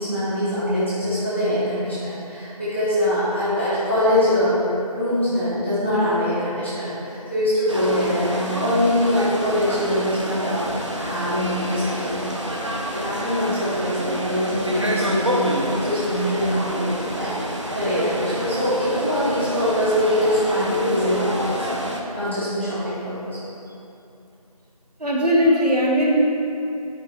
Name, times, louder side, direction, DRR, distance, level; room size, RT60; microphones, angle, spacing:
voice 1, 0.0-4.6 4.9-17.3 17.7-21.7 22.1-23.4, left 1 dB, 20° left, -14 dB, 2.1 m, -23 dB
sound 1, 7.7-22.0, equal, 50° right, 0.9 m, -28 dB
voice 2, 25.0-26.2, equal, 80° right, -4 dB, 2.0 m, -18 dB
12.5 x 5.4 x 3.6 m, 2.8 s
figure-of-eight pair, 175°, 20 cm